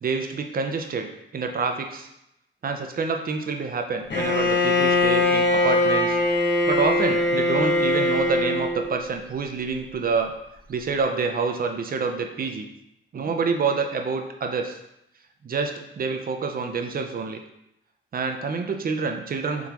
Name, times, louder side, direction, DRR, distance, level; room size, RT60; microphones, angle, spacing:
voice 1, 0.0-2.1 2.6-6.2 6.7-10.4 10.7-12.7 13.1-14.8 15.4-17.4 18.1-19.7, right 4 dB, 45° right, 4 dB, 0.5 m, -27 dB
Bowed string instrument, 4.1-8.9, left 2 dB, 55° left, 1.1 m, -21 dB
3.7 x 3.6 x 2.9 m, 0.83 s
wide cardioid pair, 115°, 21 cm